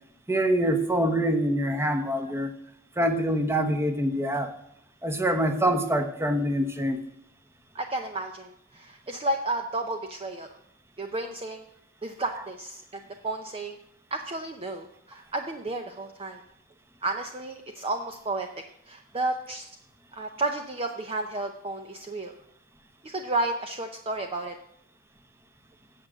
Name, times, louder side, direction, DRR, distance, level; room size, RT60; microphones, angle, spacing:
voice 1, 0.3-2.5 3.0-4.5 5.0-7.0, right 1 dB, 10° right, 7 dB, 1.0 m, -25 dB
voice 2, 7.7-10.5 11.0-11.6 12.0-13.8 14.1-16.4 17.0-18.5 18.9-19.7 20.1-22.3 23.0-24.5, right 2 dB, 25° right, 4 dB, 0.7 m, -32 dB
8.7 x 7.6 x 7.6 m, 0.78 s
head